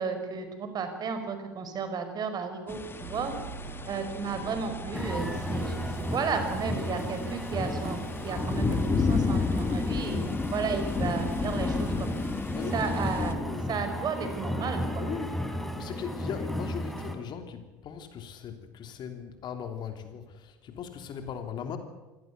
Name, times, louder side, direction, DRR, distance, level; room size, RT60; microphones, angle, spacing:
voice 1, 0.0-3.3 3.9-8.0 8.2-12.2 12.7-13.4 13.7-15.1, right 5 dB, 40° right, 8 dB, 5.2 m, -33 dB
sound 1, 2.7-13.3, left 4 dB, 20° left, 2.3 m, -32 dB
sound 2, 3.0-11.2, right 6 dB, 70° right, 2.8 m, -45 dB
sound 3, 4.9-17.2, equal, 5° left, 4.3 m, -34 dB
voice 2, 12.5-12.8 13.2-13.8 15.0-15.4 15.8-21.8, left 7 dB, 50° left, 7 dB, 3.2 m, -38 dB
26.5 x 17.0 x 8.3 m, 1.1 s
hypercardioid pair, 65°, 10 cm